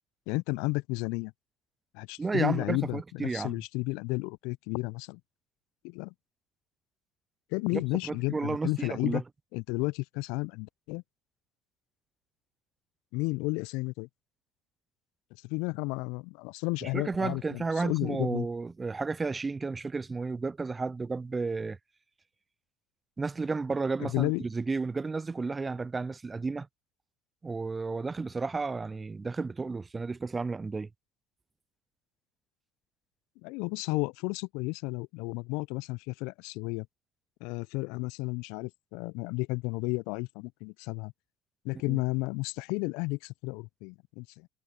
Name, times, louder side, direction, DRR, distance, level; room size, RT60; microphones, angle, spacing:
voice 1, 0.3-1.3 1.9-5.2 5.8-6.1 7.5-9.2 9.5-11.0 13.1-14.1 15.4-18.5 24.0-24.4 33.4-36.9 37.4-41.1 41.6-44.5, left 27 dB, 65° left, 0.5 m, -32 dB
voice 2, 2.2-3.6 7.7-9.2 16.8-21.8 23.2-26.7 27.4-30.9 41.9-42.0, right 4 dB, 25° right, 0.5 m, -32 dB
hypercardioid pair, 60°, 0 cm